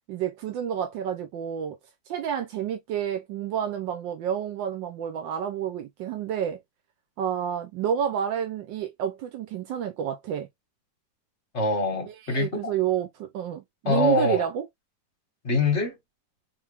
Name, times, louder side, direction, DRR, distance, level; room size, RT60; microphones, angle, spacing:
voice 1, 0.1-1.8 2.1-6.6 7.2-10.5 12.1-14.7, right 9 dB, 80° right, 1.4 m, -29 dB
voice 2, 11.5-12.7 13.9-14.5 15.4-16.0, left 3 dB, 40° left, 1.8 m, -24 dB
3.6 x 3.5 x 3.4 m
omnidirectional pair, 2.0 m